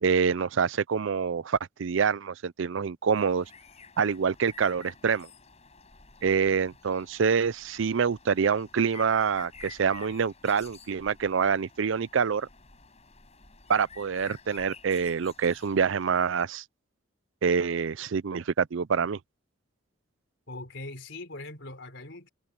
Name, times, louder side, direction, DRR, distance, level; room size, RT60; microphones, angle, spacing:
voice 1, 0.0-3.5 4.0-5.3 6.2-12.5 13.7-16.6 17.4-19.2, right 6 dB, 65° right, 0.5 m, -26 dB
sound 1, 3.1-16.4, left 5 dB, 30° left, 6.7 m, -51 dB
voice 2, 20.5-22.3, left 2 dB, 60° left, 4.2 m, -41 dB
head